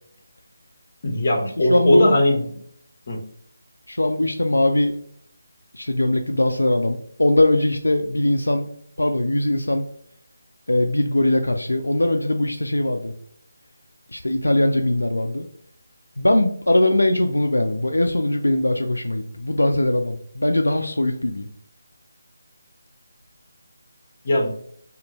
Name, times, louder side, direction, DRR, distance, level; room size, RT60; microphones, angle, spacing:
voice 1, 1.0-2.6 3.1-3.2 24.2-24.5, left 1 dB, 45° left, 1 dB, 0.8 m, -19 dB
voice 2, 1.7-2.1 3.9-4.9 5.7-8.7 9.0-9.9 10.7-13.1 14.1-15.5 16.2-21.5, left 1 dB, 90° left, 5 dB, 0.3 m, -21 dB
2.6 x 2.1 x 2.9 m, 0.64 s
figure-of-eight pair, 155°, 0 cm